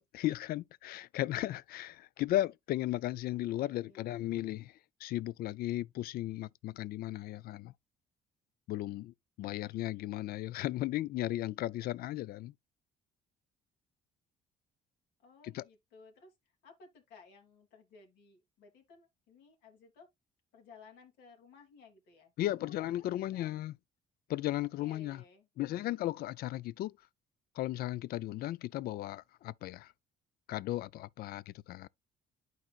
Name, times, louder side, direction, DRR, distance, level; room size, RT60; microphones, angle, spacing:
voice 1, 0.0-4.7 5.0-7.7 8.7-12.5 15.4-15.6 22.4-23.7 24.3-25.2 25.6-26.9 27.6-29.9 30.5-31.9, left 15 dB, 65° left, 0.4 m, -35 dB
voice 2, 3.3-4.4 15.2-16.3 16.6-20.1 20.5-23.5 24.8-25.5, left 4 dB, 85° left, 3.0 m, -58 dB
11.5 x 4.6 x 2.4 m
cardioid pair, 110°, 17 cm